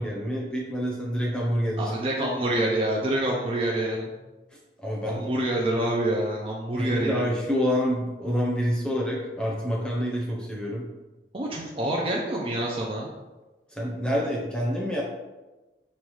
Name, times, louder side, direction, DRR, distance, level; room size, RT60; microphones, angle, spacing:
voice 1, 0.0-1.9 2.2-2.3 4.8-5.2 6.8-10.8 13.7-15.0, equal, 5° left, -4 dB, 0.7 m, -27 dB
voice 2, 1.8-4.1 5.1-7.3 11.3-13.1, right 1 dB, 30° right, -2 dB, 0.4 m, -27 dB
5.5 x 2.3 x 3.1 m, 1.1 s
head